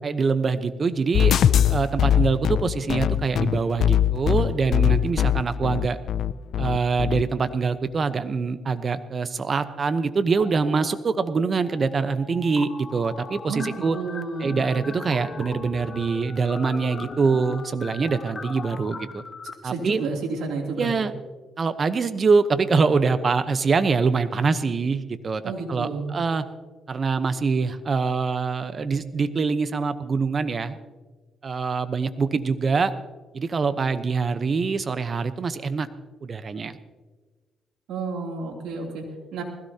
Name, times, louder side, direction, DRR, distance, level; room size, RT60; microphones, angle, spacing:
voice 1, 0.0-6.0 6.6-14.0 14.4-19.2 19.6-20.0 20.8-21.1 21.6-25.4 25.7-26.4 26.9-30.8 31.4-32.9 33.3-35.9 36.2-36.8, right 4 dB, 40° right, 12 dB, 0.9 m, -24 dB
sound 1, 1.1-7.2, left 9 dB, 65° left, 0.4 m, -21 dB
sound 2, 10.3-11.3 11.5-19.5, left 4 dB, 40° left, 1.2 m, -39 dB
voice 2, 13.5-14.5 19.6-20.9 25.4-26.1 37.9-39.0 39.3-39.4, right 4 dB, 85° right, 0 dB, 3.1 m, -31 dB
20.5 x 16.0 x 2.9 m, 1.3 s
cardioid pair, 95°, 0 cm